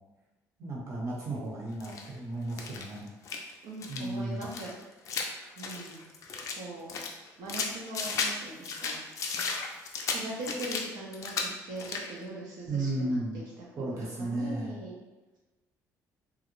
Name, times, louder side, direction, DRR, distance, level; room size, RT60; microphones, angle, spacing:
voice 1, 0.6-3.1 3.9-4.5 12.6-13.4 13.8-14.8, right 2 dB, 45° right, -4 dB, 0.8 m, -34 dB
sound 1, 1.8-2.1 2.5-3.5 3.8-4.1 4.4-6.6 6.9-8.4 8.6-10.9 11.1-11.5 11.8-12.1, left 4 dB, 50° left, 0.3 m, -34 dB
voice 2, 3.6-4.7 5.6-6.1 6.5-7.0 7.4-9.6 10.1-13.2 13.8-14.9, right 2 dB, 80° right, -5 dB, 0.6 m, -41 dB
2.5 x 2.0 x 2.9 m, 1.1 s
cardioid pair, 130°, 7 cm